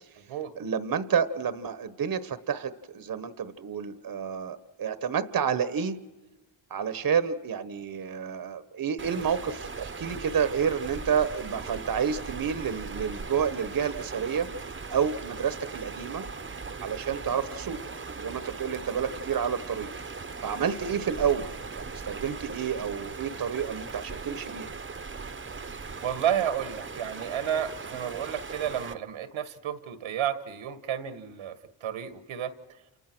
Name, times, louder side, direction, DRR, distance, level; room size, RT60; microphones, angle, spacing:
voice 1, 0.6-6.0 6.7-14.5 14.9-16.2 16.8-17.8 18.2-19.9 20.4-24.7, right 7 dB, 45° right, 12 dB, 1.3 m, -29 dB
sound 1, 9.0-28.9, right 4 dB, 25° right, 1.2 m, -39 dB
voice 2, 26.0-32.5, right 9 dB, 75° right, 11 dB, 1.7 m, -31 dB
29.5 x 28.0 x 6.2 m, 1.1 s
cardioid pair, 70°, 48 cm